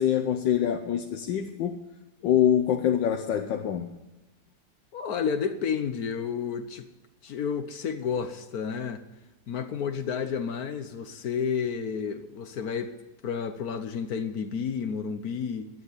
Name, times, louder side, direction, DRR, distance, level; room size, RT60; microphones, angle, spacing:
voice 1, 0.0-1.8 2.2-3.9, left 9 dB, 85° left, 1.5 m, -25 dB
voice 2, 4.9-6.9 7.2-9.0 9.5-12.9 13.2-15.7, left 6 dB, 60° left, 1.3 m, -31 dB
11.5 x 9.4 x 9.7 m
omnidirectional pair, 2.0 m